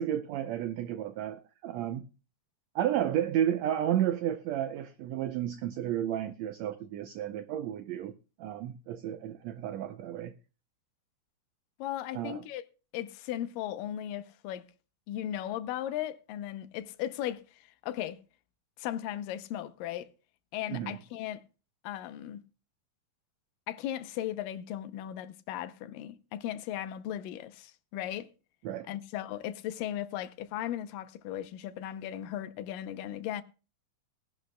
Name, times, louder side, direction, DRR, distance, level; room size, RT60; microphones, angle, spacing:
voice 1, 0.0-2.0 2.7-8.1 8.4-10.3 12.1-12.4 20.7-21.0 28.6-28.9, right 11 dB, 85° right, 1.5 m, -32 dB
voice 2, 11.8-12.6 12.9-14.7 15.1-18.2 18.8-20.1 20.5-21.4 21.8-22.4 23.7-28.3 28.9-33.4, left 12 dB, 85° left, 2.4 m, -37 dB
18.5 x 11.5 x 2.2 m
omnidirectional pair, 3.8 m